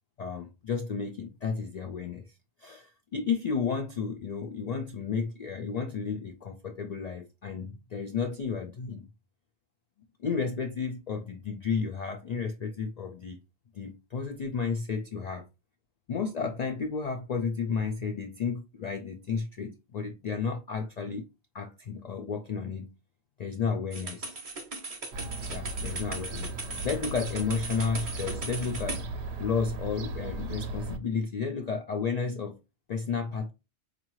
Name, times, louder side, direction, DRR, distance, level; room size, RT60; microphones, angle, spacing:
voice 1, 0.2-2.3 2.6-9.1 10.2-13.4 13.7-15.5 16.1-21.3 21.5-22.9 23.4-24.4 25.5-26.5 26.8-29.0 29.4-32.6 32.9-33.5, left 5 dB, 65° left, 0.4 m, -32 dB
sound 1, 23.9-29.0, right 3 dB, 40° right, 0.6 m, -38 dB
Fowl / Gull seagull, 25.1-31.0, right 2 dB, 70° right, 0.8 m, -37 dB
4.5 x 2.5 x 3.0 m
omnidirectional pair, 1.2 m